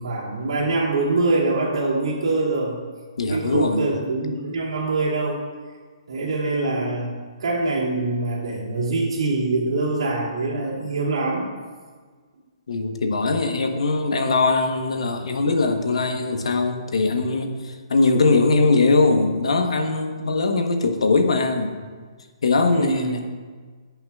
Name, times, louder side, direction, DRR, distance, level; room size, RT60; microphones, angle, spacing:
voice 1, 0.0-2.8 3.3-5.4 6.1-7.1 7.4-11.4 22.6-23.2, right 3 dB, 75° right, -3 dB, 2.5 m, -24 dB
voice 2, 3.2-3.9 12.7-21.8 22.4-23.2, left 3 dB, 80° left, 6 dB, 1.0 m, -21 dB
16.0 x 5.7 x 2.4 m, 1.5 s
hypercardioid pair, 145°, 3 cm